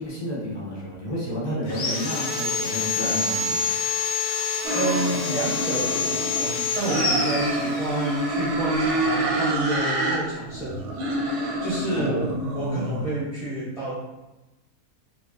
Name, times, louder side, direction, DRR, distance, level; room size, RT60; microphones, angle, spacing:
voice 1, 0.0-3.7 11.9-12.3, equal, 30° left, -6 dB, 0.5 m, -30 dB
Sawing, 1.7-8.1, left 5 dB, 65° left, 0.8 m, -27 dB
sound 1, 4.6-6.5 6.8-10.2 10.5-13.1, right 1 dB, 65° right, 0.8 m, -27 dB
voice 2, 4.7-11.0 11.3-12.3 12.5-13.9, right 2 dB, 45° right, -10 dB, 0.4 m, -30 dB
2.9 x 2.5 x 2.3 m, 1.0 s
omnidirectional pair, 1.6 m